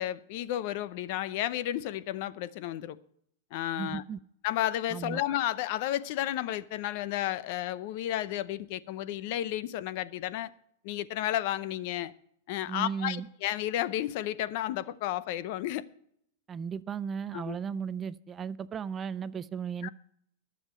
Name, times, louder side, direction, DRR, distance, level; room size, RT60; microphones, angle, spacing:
voice 1, 0.0-3.0 3.5-4.0 4.4-10.5 10.8-12.1 12.5-15.8 17.3-17.6 19.8-19.9, left 13 dB, 50° left, 0.7 m, -32 dB
voice 2, 3.8-4.2 4.9-5.2 12.7-13.3 16.5-19.9, right 6 dB, 20° right, 0.4 m, -35 dB
20.5 x 7.3 x 4.5 m
supercardioid pair, 155°, 0 cm